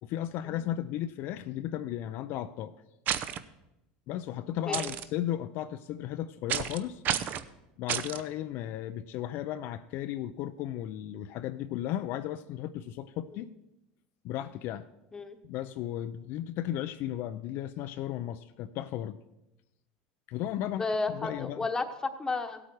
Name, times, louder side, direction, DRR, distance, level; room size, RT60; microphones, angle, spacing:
voice 1, 0.0-2.7 4.1-7.0 7.8-13.5 14.2-14.9 15.4-19.2 20.3-21.6, left 12 dB, 55° left, 10 dB, 0.5 m, -35 dB
sound 1, 3.1-3.4 4.7-5.0 6.5-6.8 7.0-7.4 7.9-8.2, right 10 dB, 45° right, 0.7 m, -30 dB
voice 2, 20.7-22.6, left 3 dB, 15° left, 7 dB, 1.1 m, -33 dB
16.0 x 8.6 x 4.8 m, 0.93 s
supercardioid pair, 120°, 4 cm